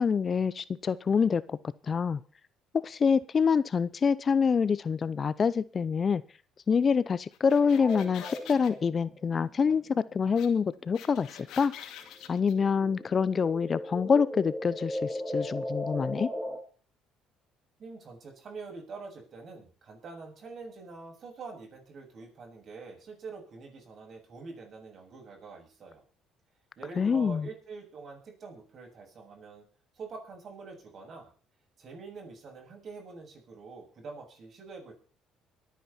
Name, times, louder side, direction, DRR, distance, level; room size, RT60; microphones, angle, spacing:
voice 1, 0.0-1.6 1.8-2.2 2.7-6.2 6.7-11.7 12.3-16.3 27.0-27.5, left 6 dB, 40° left, 19 dB, 0.7 m, -26 dB
sound 1, 7.3-8.7 10.4-10.5 10.7-12.5, left 10 dB, 70° left, 2.2 m, -46 dB
sound 2, 7.6-11.7 12.0-16.6, left 1 dB, 5° right, 5.0 m, -37 dB
voice 2, 17.8-26.0 26.8-29.7 29.9-31.3 31.8-34.9, right 4 dB, 50° right, 1 dB, 7.4 m, -45 dB
24.0 x 9.4 x 4.4 m, 0.40 s
supercardioid pair, 70°, 0 cm